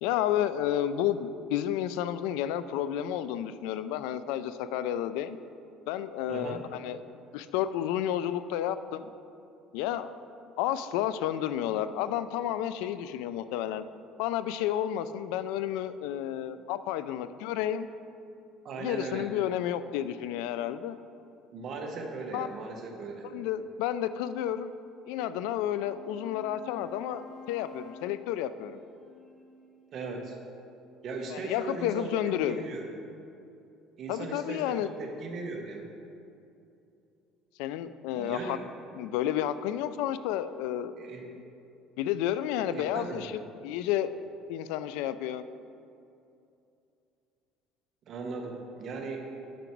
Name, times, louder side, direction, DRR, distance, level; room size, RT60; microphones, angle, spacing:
voice 1, 0.0-5.4 5.9-7.0 7.3-9.1 9.7-10.1 10.6-13.8 14.2-17.9 18.8-21.0 22.3-22.5 23.2-24.7 25.1-28.8 31.3-32.6 34.1-34.9 37.6-38.6 38.9-40.9 41.3-41.4 42.0-43.3 43.6-44.1 44.5-45.4, left 11 dB, 90° left, 13 dB, 0.3 m, -31 dB
voice 2, 6.3-6.6 18.6-19.3 21.5-23.3 29.9-30.3 31.0-32.9 34.0-35.9 38.1-38.6 41.0-41.3 42.7-43.2 48.1-49.3, right 3 dB, 40° right, 1 dB, 1.1 m, -38 dB
Wind instrument woodwind instrument, 25.1-30.1, left 5 dB, 10° left, 1.0 m, -50 dB
9.2 x 5.9 x 4.5 m, 2.7 s
cardioid pair, 150°, 0 cm